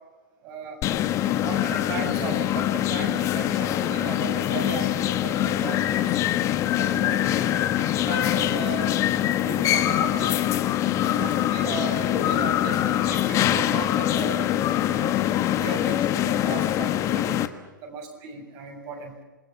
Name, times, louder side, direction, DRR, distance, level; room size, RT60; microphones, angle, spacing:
voice 1, 0.4-0.8 1.4-6.3 6.8-7.7 8.1-9.0 9.4-10.3 11.0-14.5 14.9-15.2 15.5-17.4 17.8-19.2, right 5 dB, 35° right, 3 dB, 6.9 m, -36 dB
sound 1, 0.8-17.5, left 12 dB, 30° left, 1.4 m, -24 dB
27.0 x 21.5 x 7.3 m, 1.2 s
hypercardioid pair, 120°, 11 cm